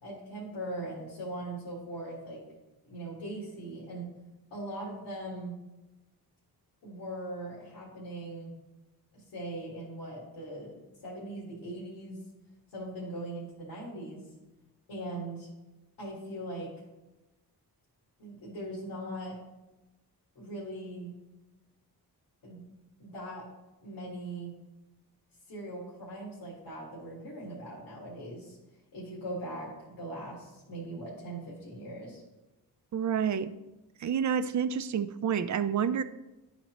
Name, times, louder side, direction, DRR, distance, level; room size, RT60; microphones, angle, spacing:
voice 1, 0.0-2.4 2.8-4.1 4.5-5.6 6.8-8.6 9.1-12.2 12.7-14.3 14.9-15.5 16.0-16.7 18.2-19.4 20.4-21.2 22.4-22.6 23.0-23.5 23.8-24.6 25.5-28.6 28.9-32.2, right 1 dB, 90° left, -5 dB, 1.9 m, -40 dB
voice 2, 32.9-33.6 34.0-36.0, right 7 dB, 50° right, 13 dB, 0.4 m, -29 dB
11.0 x 4.1 x 3.0 m, 1.0 s
cardioid pair, 70°, 39 cm